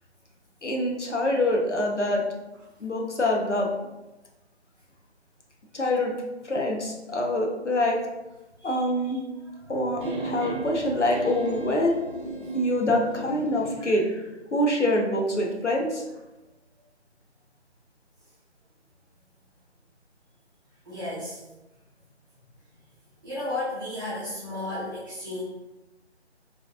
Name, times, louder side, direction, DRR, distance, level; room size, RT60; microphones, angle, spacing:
voice 1, 0.6-2.2 2.8-3.7 5.7-6.1 6.4-8.0 8.6-9.2 9.7-12.0 12.5-14.1 14.5-16.0, left 1 dB, 80° left, 0 dB, 1.0 m, -25 dB
voice 2, 8.6-9.9 20.8-21.4 23.2-25.4, left 1 dB, 20° right, -13 dB, 1.0 m, -34 dB
sound 1, 10.0-13.8, right 2 dB, 45° right, 0.8 m, -35 dB
4.3 x 3.4 x 2.4 m, 1.0 s
figure-of-eight pair, 155°, 35 cm